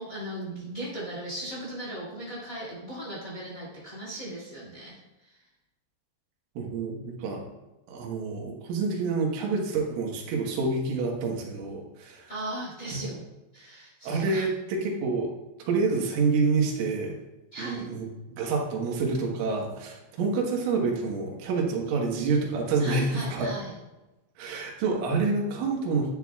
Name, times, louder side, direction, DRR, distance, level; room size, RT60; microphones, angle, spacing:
voice 1, 0.0-5.4 12.3-13.2 13.5-14.5 17.5-17.9 22.8-23.8, right 1 dB, 25° left, -5 dB, 2.2 m, -38 dB
voice 2, 6.6-7.4 7.9-12.3 12.9-13.0 14.0-15.3 15.7-17.2 17.6-23.5 24.4-26.1, right 4 dB, 80° right, 0 dB, 3.9 m, -28 dB
12.0 x 9.3 x 2.4 m, 1.0 s
omnidirectional pair, 5.6 m